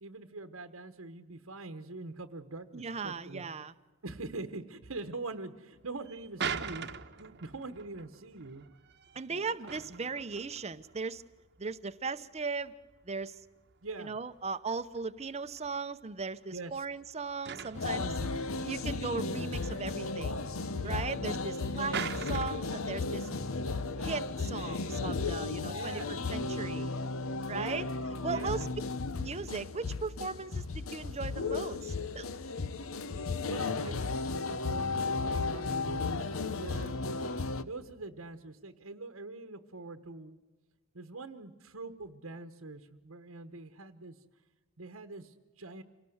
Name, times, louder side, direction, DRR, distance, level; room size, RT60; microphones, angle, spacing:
voice 1, 0.0-3.4 4.0-8.6 9.3-9.7 13.8-14.2 16.5-16.8 17.9-18.7 20.8-21.1 21.7-21.9 23.2-23.4 25.7-26.1 27.5-27.9 28.3-28.7 33.5-37.0 37.6-40.4 40.9-44.2 44.8-45.8, right 3 dB, 70° right, 8 dB, 1.2 m, -44 dB
voice 2, 2.7-3.7 9.1-11.2 11.6-12.7 13.1-13.4 14.0-18.0 18.6-20.4 20.8-23.3 24.0-26.9 27.5-27.8 28.2-28.7 29.2-32.3, right 4 dB, 30° right, 11 dB, 0.8 m, -37 dB
sound 1, 5.8-25.5, right 6 dB, 55° right, 1.1 m, -45 dB
sound 2, 17.7-37.6, left 3 dB, 70° left, 0.9 m, -34 dB
26.5 x 18.5 x 7.9 m, 1.3 s
head